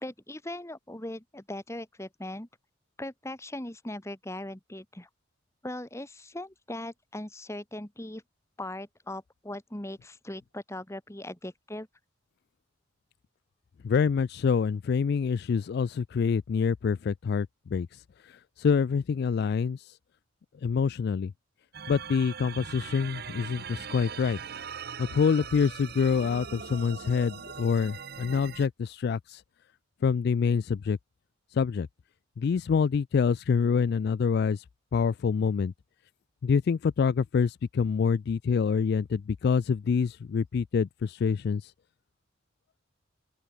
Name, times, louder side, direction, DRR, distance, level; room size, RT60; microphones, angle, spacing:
voice 1, 0.0-2.5 3.0-5.1 5.6-8.2 8.6-11.9, left 1 dB, 15° left, 1.7 m, -39 dB
voice 2, 13.8-17.9 18.2-19.9 20.6-21.3 21.9-24.4 25.0-29.4 30.0-31.0 31.5-31.9 32.4-34.6 34.9-35.7 36.4-41.7, left 6 dB, 55° left, 0.3 m, -26 dB
sound 1, 21.7-28.7, right 6 dB, 50° right, 1.0 m, -41 dB
open air
head